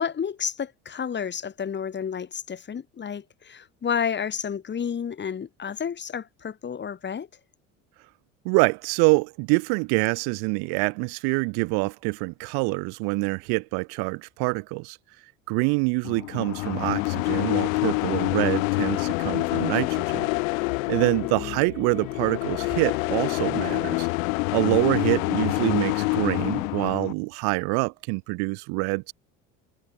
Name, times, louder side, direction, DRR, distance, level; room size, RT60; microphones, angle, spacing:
voice 1, 0.0-7.3 21.0-21.7, left 7 dB, 25° left, 1.2 m, -31 dB
voice 2, 8.4-15.0 15.5-20.2 20.9-24.1 24.5-29.1, right 33 dB, 70° right, 2.2 m, -25 dB
sound 1, 16.1-27.1, left 26 dB, 75° left, 2.3 m, -26 dB
hypercardioid pair, 80°, 40 cm